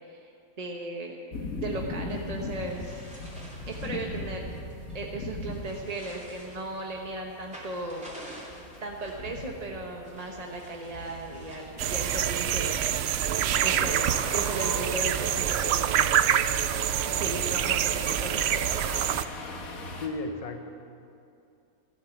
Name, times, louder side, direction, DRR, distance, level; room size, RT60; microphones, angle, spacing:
voice 1, 0.6-1.2 1.6-3.0 3.7-4.5 4.9-8.5 8.8-12.9 13.6-16.3 17.2-18.8, right 2 dB, 30° right, 0 dB, 1.1 m, -36 dB
sound 1, 1.3-20.1, left 2 dB, 75° left, 1.8 m, -40 dB
sound 2, 2.1-11.7, equal, 5° right, 2.7 m, -50 dB
sound 3, 11.8-19.3, right 10 dB, 65° right, 0.7 m, -26 dB
voice 2, 20.0-20.7, left 2 dB, 30° left, 6 dB, 0.9 m, -34 dB
14.0 x 11.5 x 7.2 m, 2.6 s
omnidirectional pair, 1.5 m